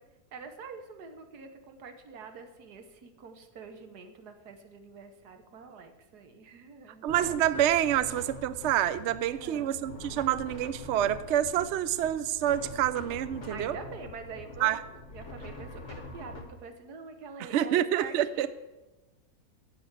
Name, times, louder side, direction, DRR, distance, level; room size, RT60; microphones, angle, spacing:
voice 1, 0.3-7.1 9.3-9.7 13.5-18.5, right 5 dB, 85° right, 7 dB, 1.7 m, -46 dB
voice 2, 7.0-13.8 14.6-14.8 17.5-18.5, right 11 dB, 65° right, 15 dB, 0.7 m, -27 dB
sound 1, 7.1-16.4, left 2 dB, 50° left, 1.6 m, -44 dB
7.8 x 7.7 x 7.9 m, 1.1 s
omnidirectional pair, 1.6 m